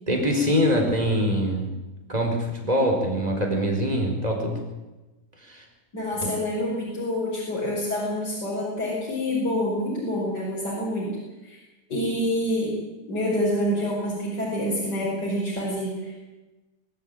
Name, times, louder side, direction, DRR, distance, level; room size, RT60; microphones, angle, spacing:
voice 1, 0.1-1.7 2.1-4.6 5.5-5.6 6.2-6.3, equal, 20° right, 2 dB, 4.7 m, -24 dB
voice 2, 5.9-11.1 11.4-11.6 11.9-12.7 13.1-16.1, left 1 dB, 75° left, -5 dB, 6.1 m, -27 dB
23.0 x 14.5 x 8.9 m, 1.1 s
omnidirectional pair, 1.8 m